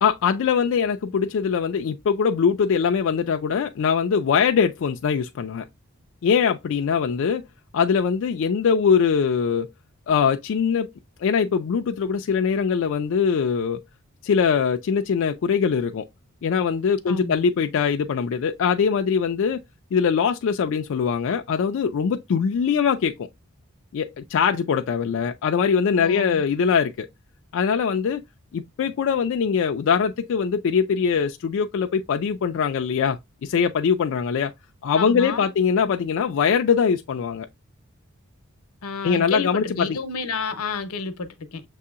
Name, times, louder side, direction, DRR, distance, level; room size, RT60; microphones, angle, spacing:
voice 1, 0.0-5.7 6.2-7.5 7.7-9.7 10.1-10.9 11.2-13.8 14.2-16.1 16.4-19.6 19.9-23.3 23.9-27.1 27.5-28.2 28.5-34.5 34.8-37.5 39.0-40.0, left 6 dB, 60° left, 0.3 m, -22 dB
voice 2, 17.1-17.5 26.0-26.4 34.9-35.5 38.8-41.6, left 4 dB, 90° left, 0.8 m, -30 dB
6.6 x 2.8 x 2.4 m
head